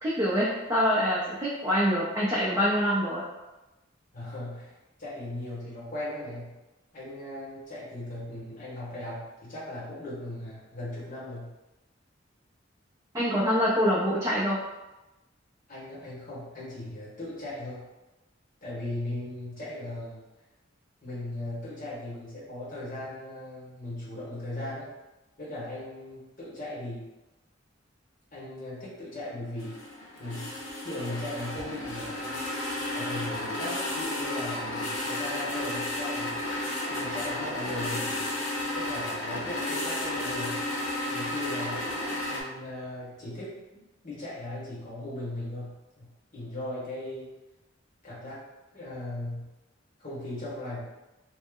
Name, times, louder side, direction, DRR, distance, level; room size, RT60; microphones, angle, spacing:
voice 1, 0.0-3.2 13.1-14.6, equal, 20° right, -8 dB, 0.5 m, -25 dB
voice 2, 4.1-6.6 6.9-11.5 15.7-17.9 18.6-20.2 21.0-24.9 25.4-27.0 28.3-29.8 30.2-30.5 30.8-32.4 32.9-36.4 36.9-38.3 38.7-40.7 41.1-41.9 42.3-47.3 48.0-48.4 48.7-49.5 50.0-50.9, left 1 dB, 45° left, -9 dB, 1.4 m, -38 dB
sound 1, 29.6-42.4, left 1 dB, 80° left, 0.7 m, -32 dB
3.1 x 2.1 x 3.6 m, 1.0 s
head